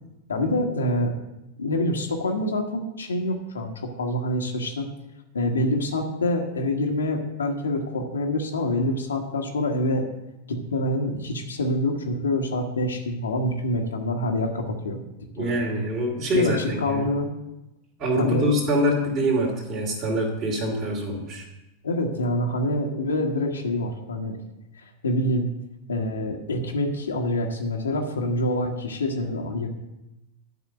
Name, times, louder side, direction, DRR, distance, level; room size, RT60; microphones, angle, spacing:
voice 1, 0.3-1.1 1.6-4.9 5.3-10.1 10.5-15.0 15.4-15.5 16.3-17.3 18.2-18.5 21.8-24.4 24.8-25.5 25.9-29.7, left 1 dB, 70° left, 1 dB, 1.4 m, -26 dB
voice 2, 15.3-17.1 18.0-21.5, equal, 35° right, -2 dB, 2.8 m, -24 dB
11.0 x 5.8 x 7.7 m, 0.93 s
figure-of-eight pair, 90°, 0 cm